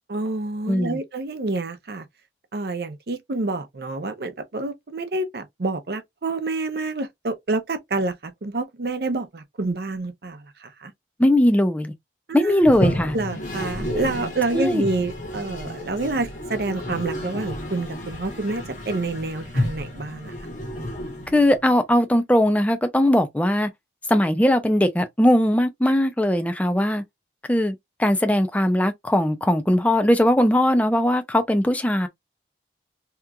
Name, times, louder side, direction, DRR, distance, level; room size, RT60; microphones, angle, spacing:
voice 1, 0.1-2.0 2.5-10.9 12.3-12.5 13.1-20.3, right 2 dB, 60° right, 0.6 m, -28 dB
voice 2, 0.7-1.0 11.2-11.9 12.3-13.2 14.5-14.8 21.3-23.7 24.1-27.0 27.5-32.1, left 1 dB, 10° left, 0.5 m, -19 dB
Toilet flush, 12.6-21.7, left 1 dB, 45° left, 0.9 m, -31 dB
2.9 x 2.4 x 3.4 m
head